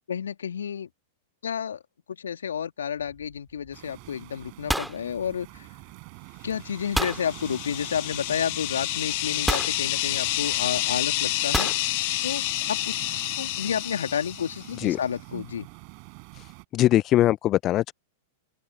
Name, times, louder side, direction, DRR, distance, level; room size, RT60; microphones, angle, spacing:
voice 1, 0.1-0.9 1.4-1.8 2.1-5.7 6.4-11.7 12.2-13.0 13.4-15.7, left 8 dB, 75° left, 2.5 m, -31 dB
sound 1, 3.1-3.4 3.7-4.1 4.3-5.9 7.0-7.3 8.4-8.5 9.5-9.8 11.5-11.8, right 1 dB, ahead, 2.3 m, -29 dB
sound 2, 3.7-16.6, right 40 dB or more, 50° right, 7.0 m, -44 dB
sound 3, 6.9-14.7, left 23 dB, 55° left, 1.6 m, -29 dB
voice 2, 16.7-17.9, left 14 dB, 35° left, 0.5 m, -21 dB
open air
figure-of-eight pair, 100°, 0 cm